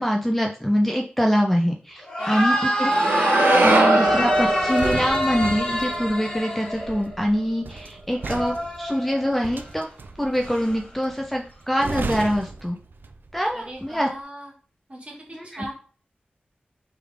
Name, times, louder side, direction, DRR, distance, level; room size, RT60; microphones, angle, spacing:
voice 1, 0.0-2.9 3.6-9.9 10.2-12.8 13.3-14.1 15.3-15.6, equal, 5° left, 1 dB, 0.5 m, -24 dB
sound 1, 2.0-7.2 8.2-9.4 10.4-10.8, equal, 25° left, 1.3 m, -25 dB
voice 2, 2.2-3.1 13.5-14.5 14.9-15.1 15.4-15.7, right 1 dB, 35° right, -3 dB, 1.7 m, -39 dB
sound 2, 2.9-7.1, right 2 dB, 90° right, 0.7 m, -23 dB
sound 3, 4.1-13.4 13.7-14.0, right 3 dB, 70° right, 0.4 m, -35 dB
3.5 x 3.2 x 3.5 m, 0.41 s
wide cardioid pair, 55°, 4 cm